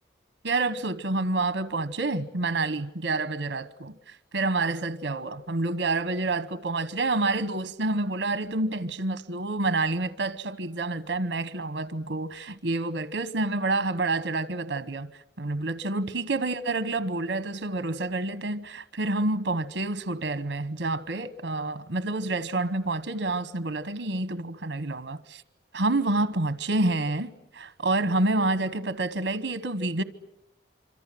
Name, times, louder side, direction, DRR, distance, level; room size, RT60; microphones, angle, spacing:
voice 1, 0.4-15.1 15.4-25.4 25.7-30.0, right 2 dB, 90° right, 1.1 m, -28 dB
26.0 x 26.0 x 7.7 m
head